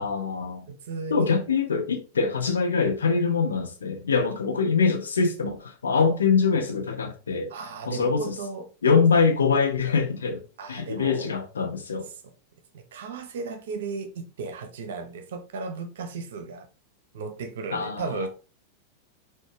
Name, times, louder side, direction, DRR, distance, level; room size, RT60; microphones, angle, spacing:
voice 1, 0.0-0.6 1.1-7.5 7.9-8.3 8.8-10.4 10.7-12.1 17.7-18.3, left 5 dB, 70° left, 0.7 m, -24 dB
voice 2, 0.7-1.3 7.5-8.7 10.6-11.3 12.0-12.3 12.7-16.7 17.1-18.3, right 4 dB, 60° right, 0.7 m, -35 dB
4.1 x 2.5 x 3.2 m
figure-of-eight pair, 90°, 0 cm